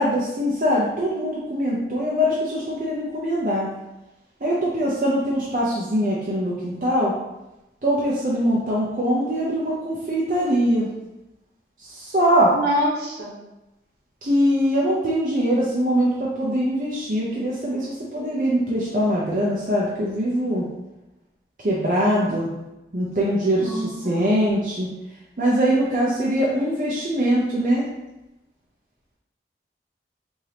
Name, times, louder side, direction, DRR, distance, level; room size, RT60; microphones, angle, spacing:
voice 1, 0.0-3.7 4.4-7.1 7.8-10.9 11.8-12.5 14.2-20.6 21.6-22.5 22.9-24.9 25.4-27.9, equal, 45° right, -6 dB, 0.6 m, -22 dB
voice 2, 12.5-13.3 23.6-24.7, equal, 70° right, -4 dB, 1.2 m, -27 dB
4.8 x 2.7 x 2.9 m, 0.96 s
head